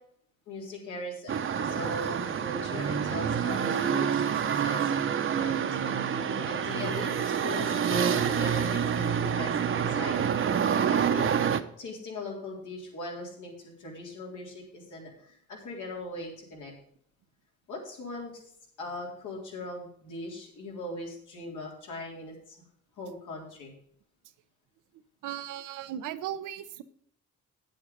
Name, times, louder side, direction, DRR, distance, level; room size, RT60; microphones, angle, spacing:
voice 1, 0.5-4.9 5.3-5.6 6.0-10.2 10.9-11.3 11.8-16.7 17.7-18.4 18.8-22.6 23.0-23.7, left 1 dB, 80° left, -1 dB, 3.7 m, -40 dB
sound 1, 1.3-11.6, right 7 dB, 45° right, 0.8 m, -27 dB
voice 2, 25.2-26.8, right 11 dB, 90° right, 12 dB, 0.7 m, -36 dB
9.4 x 7.9 x 5.2 m, 0.67 s
cardioid pair, 90°, 30 cm